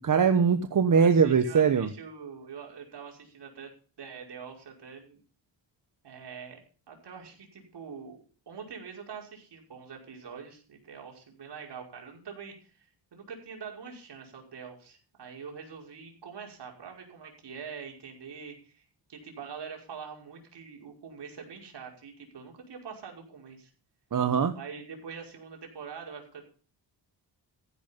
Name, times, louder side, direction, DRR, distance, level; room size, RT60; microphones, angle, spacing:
voice 1, 0.0-1.9 24.1-24.5, right 6 dB, 45° right, 8 dB, 1.2 m, -22 dB
voice 2, 0.8-3.7 4.0-5.2 6.0-6.6 6.9-8.2 8.5-18.8 19.1-23.7 24.5-26.4, right 6 dB, 60° right, 1 dB, 5.6 m, -44 dB
15.0 x 11.0 x 5.4 m, 0.38 s
wide cardioid pair, 135°, 46 cm